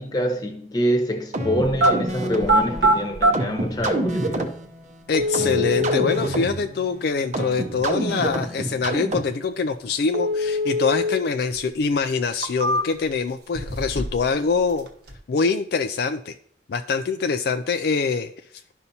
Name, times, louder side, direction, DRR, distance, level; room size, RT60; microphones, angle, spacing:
voice 1, 0.0-4.6, equal, 25° left, 1.1 m, -25 dB
sound 1, 1.3-9.5, right 1 dB, 40° right, 0.7 m, -29 dB
sound 2, 1.6-1.9 2.4-3.3 4.3-4.4 5.1-6.2 10.1-11.2 11.6-11.7 12.3-13.1 13.5-14.3 14.6-15.1, equal, 65° right, 1.0 m, -22 dB
voice 2, 5.1-14.9 15.3-16.3 16.7-18.3, left 4 dB, 65° left, 0.4 m, -24 dB
12.0 x 5.5 x 2.8 m
head